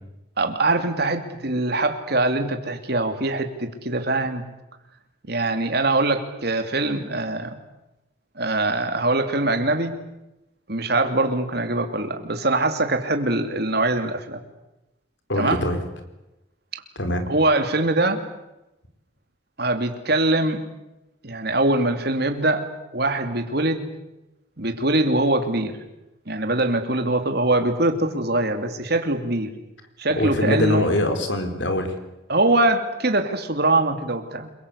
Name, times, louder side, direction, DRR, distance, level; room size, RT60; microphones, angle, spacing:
voice 1, 0.4-4.4 5.3-7.6 8.4-9.9 10.7-14.4 15.4-15.7 16.7-16.8 17.3-18.2 19.6-20.6 21.2-23.8 24.6-25.8 26.3-29.5 30.0-30.9 32.3-34.5, right 2 dB, 55° right, 7 dB, 2.9 m, -23 dB
voice 2, 15.3-15.8 17.0-17.3 30.2-31.9, left 1 dB, 70° left, 7 dB, 4.2 m, -23 dB
28.5 x 22.5 x 8.3 m, 0.94 s
head